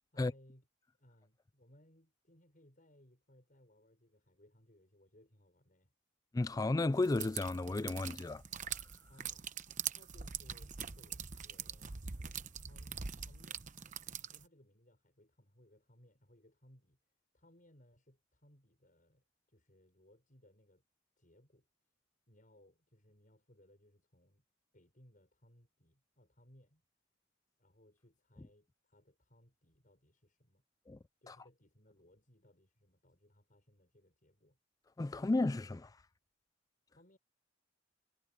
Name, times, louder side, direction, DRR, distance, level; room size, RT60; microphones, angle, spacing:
voice 1, 0.1-0.6 1.0-5.9 9.1-13.6 14.3-17.0 17.3-20.8 21.2-21.7 22.3-24.4 24.7-26.8 27.6-30.6 31.2-34.6 36.9-37.2, left 1 dB, 45° left, 6.2 m, -65 dB
voice 2, 6.3-8.4 8.7-8.8 30.9-31.0 31.3-31.4 35.0-36.0, left 2 dB, 20° left, 0.3 m, -33 dB
sound 1, 7.0-14.5, right 7 dB, 40° right, 0.9 m, -43 dB
head